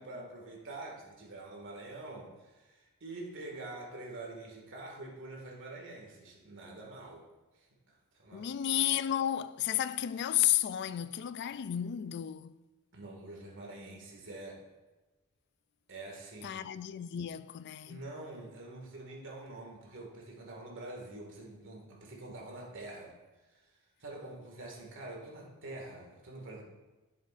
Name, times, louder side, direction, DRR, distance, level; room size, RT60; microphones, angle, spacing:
voice 1, 0.0-7.2 7.5-7.7 8.1-8.5 12.9-14.6 15.9-16.6 17.9-23.1 23.5-26.6, right 2 dB, 60° right, 2.0 m, -46 dB
voice 2, 8.3-12.6 16.4-18.0, left 11 dB, 50° left, 0.3 m, -32 dB
11.0 x 7.3 x 2.5 m
head